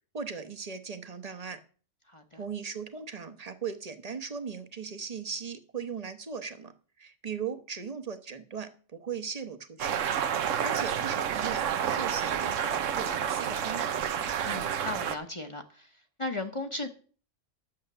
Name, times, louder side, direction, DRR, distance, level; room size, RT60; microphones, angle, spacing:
voice 1, 0.1-1.6 2.4-6.7 7.0-10.0 10.6-14.0, right 6 dB, 35° right, 10 dB, 1.0 m, -38 dB
voice 2, 2.1-2.4 14.4-15.9 16.2-16.9, left 2 dB, 25° left, 5 dB, 1.0 m, -36 dB
sound 1, 9.8-15.1, right 8 dB, 85° right, 1.2 m, -29 dB
10.5 x 7.2 x 6.7 m, 0.41 s
omnidirectional pair, 1.3 m